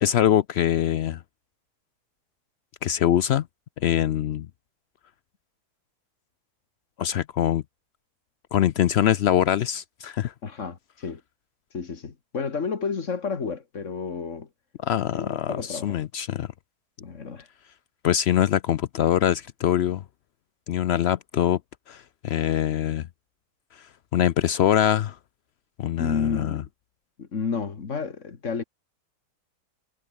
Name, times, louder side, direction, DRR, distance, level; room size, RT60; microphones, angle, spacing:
voice 1, 0.0-1.2 2.8-3.4 3.8-4.5 7.0-7.6 8.5-10.3 14.8-16.5 18.0-20.0 20.7-21.6 21.9-23.1 24.1-25.2 25.8-26.6, left 10 dB, 85° left, 0.5 m, -23 dB
voice 2, 10.4-11.2 11.7-14.5 15.1-16.0 17.0-17.5 26.0-26.7 27.2-28.6, left 5 dB, 50° left, 2.0 m, -31 dB
omnidirectional pair, 1.8 m